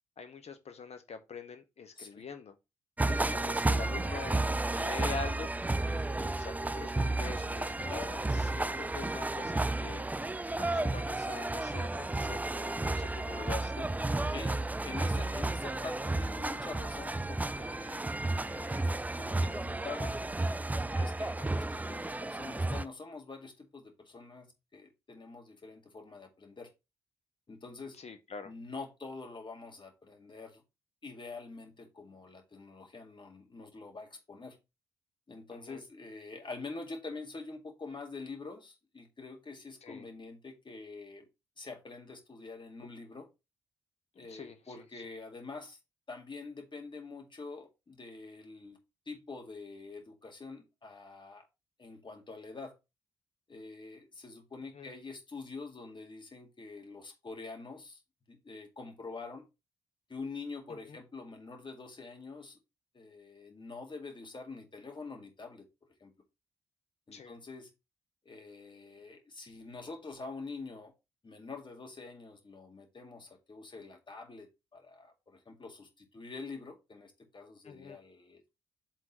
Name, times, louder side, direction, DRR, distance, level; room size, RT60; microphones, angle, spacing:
voice 1, 0.2-2.5 3.3-4.4 4.7-5.5 5.9-8.0 8.3-10.1 10.6-12.4 12.8-13.9 14.2-14.3 28.0-28.5 35.5-35.8 39.8-40.0 44.1-44.9 54.7-54.9 60.7-61.0 67.1-67.4 77.6-78.0, left 5 dB, 50° left, 1.2 m, -45 dB
voice 2, 3.0-3.4 7.9-8.4 12.6-12.9 14.3-18.0 18.5-20.2 20.9-26.7 27.5-28.0 28.4-30.6 31.0-34.6 35.3-41.3 41.6-43.3 44.2-45.8 46.1-48.8 49.1-51.5 51.8-52.7 53.5-58.0 58.3-59.5 60.1-62.6 62.9-65.7 66.0-66.1 67.1-67.7 68.3-70.9 71.2-78.6, left 3 dB, 35° left, 2.1 m, -46 dB
sound 1, 3.0-22.8, right 2 dB, 10° right, 0.4 m, -32 dB
10.5 x 3.7 x 3.1 m
hypercardioid pair, 40°, 14 cm